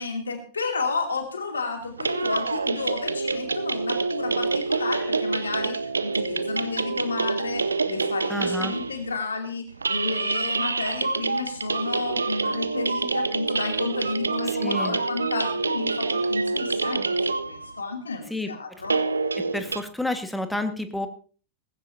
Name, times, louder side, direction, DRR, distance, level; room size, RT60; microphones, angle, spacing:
voice 1, 0.0-17.1 17.4-19.0, left 4 dB, 75° left, 4 dB, 2.7 m, -31 dB
sound 1, 1.9-9.1 9.7-17.8 18.8-19.8, right 4 dB, 75° right, 0.6 m, -27 dB
voice 2, 8.3-8.7 14.6-15.0 18.3-18.5 19.5-21.1, left 1 dB, 5° left, 8 dB, 1.5 m, -29 dB
19.0 x 15.5 x 2.7 m, 0.38 s
figure-of-eight pair, 90°, 0 cm